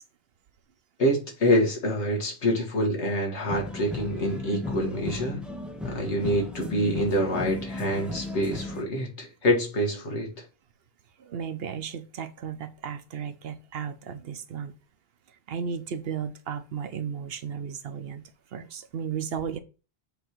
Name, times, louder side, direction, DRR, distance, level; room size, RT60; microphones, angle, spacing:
voice 1, 1.0-5.4 5.8-10.4, equal, 90° left, 1.9 m, -26 dB
sound 1, 3.4-8.8, left 2 dB, ahead, 0.5 m, -35 dB
voice 2, 11.2-14.7 15.5-18.2 18.5-19.6, right 7 dB, 65° right, 0.9 m, -34 dB
7.1 x 3.3 x 4.5 m
omnidirectional pair, 1.1 m